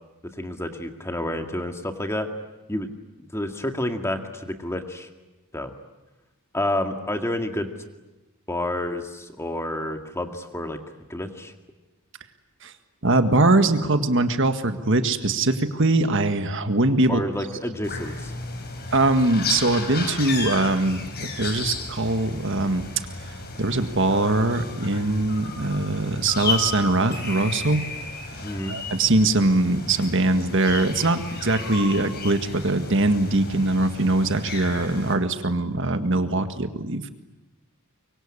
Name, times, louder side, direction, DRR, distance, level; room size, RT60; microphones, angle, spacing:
voice 1, 0.4-2.3 2.7-2.9 3.2-5.1 5.5-5.7 6.5-7.7 8.5-10.8 11.1-11.5 17.1-18.3 28.4-28.8, left 1 dB, 10° left, 5 dB, 2.0 m, -29 dB
voice 2, 13.0-17.2 18.9-22.9 23.6-27.8 28.7-37.1, right 2 dB, 55° right, 8 dB, 1.8 m, -22 dB
sound 1, 17.8-35.1, left 4 dB, 45° left, 4.3 m, -34 dB
24.5 x 24.0 x 9.9 m, 1.1 s
head